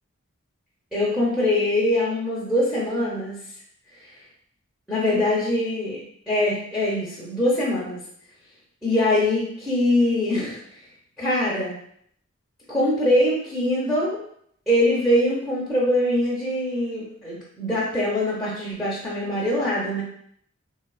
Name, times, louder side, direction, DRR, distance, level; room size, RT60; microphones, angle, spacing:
voice 1, 0.9-3.4 4.9-6.0 6.3-8.0 8.8-10.6 11.2-11.8 12.7-14.2 14.7-20.0, left 1 dB, ahead, -8 dB, 0.6 m, -23 dB
3.2 x 2.3 x 2.3 m, 0.66 s
head